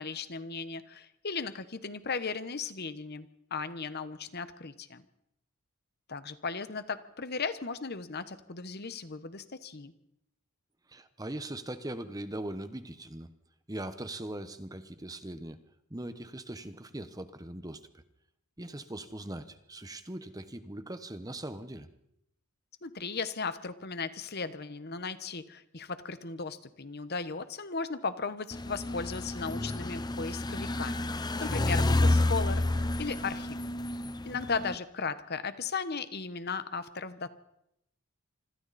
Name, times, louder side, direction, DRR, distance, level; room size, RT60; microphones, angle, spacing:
voice 1, 0.0-5.0 6.1-9.9 22.8-32.6 33.0-33.6 34.2-37.3, left 4 dB, 45° left, 12 dB, 1.1 m, -36 dB
voice 2, 10.9-13.3 13.7-15.6 15.9-18.0 18.6-21.9, right 1 dB, 15° right, 11 dB, 1.1 m, -40 dB
sound 1, 28.5-34.7, left 2 dB, 20° left, 0.7 m, -30 dB
26.0 x 25.5 x 4.2 m, 0.81 s
head